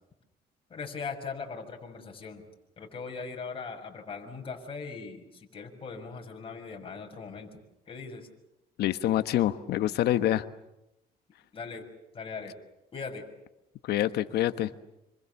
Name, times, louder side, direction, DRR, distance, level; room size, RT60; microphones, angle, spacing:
voice 1, 0.7-2.4 2.8-7.5 7.9-8.3 11.5-11.8 12.1-12.6 12.9-13.2, left 5 dB, 30° left, 1 dB, 6.5 m, -39 dB
voice 2, 8.8-10.4 13.8-14.7, left 13 dB, 75° left, 11 dB, 1.3 m, -26 dB
27.0 x 26.0 x 7.1 m, 0.88 s
cardioid pair, 110°, 17 cm